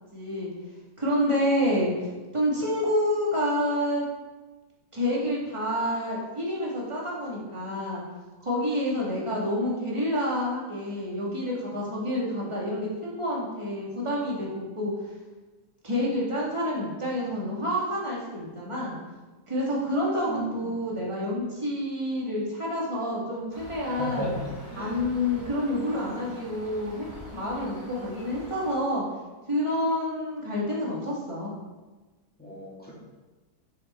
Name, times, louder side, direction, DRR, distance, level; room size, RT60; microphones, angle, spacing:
voice 1, 0.1-0.5 1.0-1.9 2.3-4.0 4.9-8.0 8.4-14.9 15.8-19.0 19.5-24.4 24.8-27.1 27.3-29.0 29.5-31.5, left 1 dB, 15° right, -5 dB, 1.9 m, -28 dB
voice 2, 20.3-20.6 24.0-25.0 32.4-32.9, right 1 dB, 5° left, -6 dB, 2.0 m, -34 dB
sound 1, 23.5-28.7, equal, 65° right, 2.9 m, -45 dB
6.7 x 6.4 x 4.3 m, 1.2 s
omnidirectional pair, 1.9 m